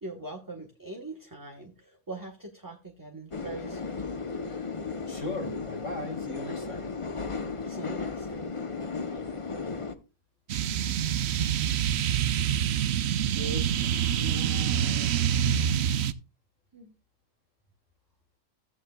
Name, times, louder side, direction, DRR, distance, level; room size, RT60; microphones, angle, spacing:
voice 1, 0.0-4.0 7.7-8.4 16.7-16.9, right 2 dB, 15° right, 1 dB, 1.0 m, -42 dB
sound 1, 3.3-9.9, left 4 dB, 35° left, 0.6 m, -35 dB
voice 2, 5.1-6.9 13.3-15.8, equal, 60° left, 3 dB, 2.3 m, -39 dB
sound 2, 10.5-16.1, right 9 dB, 60° right, 0.7 m, -26 dB
14.5 x 8.4 x 2.3 m, 0.31 s
omnidirectional pair, 1.5 m